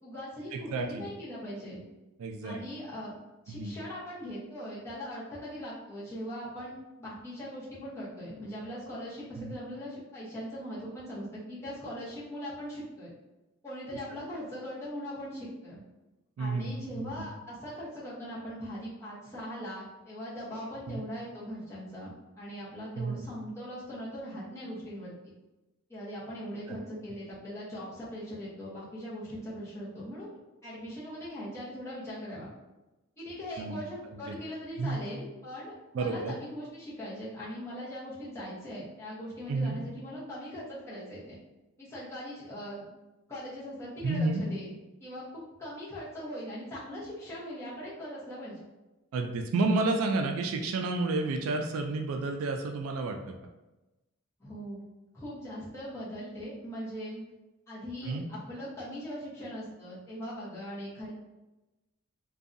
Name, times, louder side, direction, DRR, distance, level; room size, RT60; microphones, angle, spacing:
voice 1, 0.0-1.8 2.4-3.2 3.4-13.1 13.6-15.8 16.4-25.1 25.9-32.5 33.2-41.4 41.8-42.8 43.3-44.7 45.0-48.6 54.4-54.8 55.1-57.2 57.7-61.1, equal, 10° left, -9 dB, 0.8 m, -40 dB
voice 2, 0.5-1.1 2.2-2.6 3.5-3.8 9.4-9.5 16.4-17.3 20.9-21.0 23.0-23.3 26.7-26.8 33.6-33.8 34.1-34.4 34.8-35.0 35.9-36.4 39.5-39.8 44.0-44.4 49.1-53.3 58.0-58.3, right 3 dB, 70° right, 4 dB, 0.3 m, -31 dB
2.6 x 2.3 x 2.5 m, 1.1 s
head